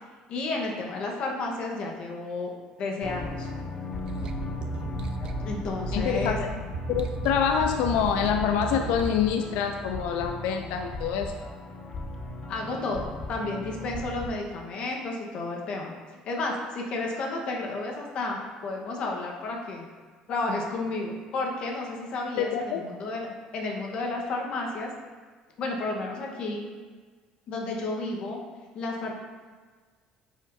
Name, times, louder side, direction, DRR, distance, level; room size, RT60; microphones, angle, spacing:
voice 1, 0.3-2.5 2.8-3.5 5.2-6.4 12.5-19.9 20.3-23.3 23.5-24.9 25.6-26.6 27.5-28.4 28.7-29.1, left 2 dB, 45° left, 0 dB, 1.1 m, -32 dB
sound 1, 3.0-14.4, left 2 dB, 25° left, 0.5 m, -37 dB
sound 2, 4.1-9.2, right 5 dB, 35° right, 0.4 m, -35 dB
voice 2, 5.9-6.5 6.9-11.3 22.4-22.8, left 8 dB, 85° left, 5 dB, 0.4 m, -26 dB
9.4 x 4.9 x 2.7 m, 1.5 s
cardioid pair, 170°, 2 cm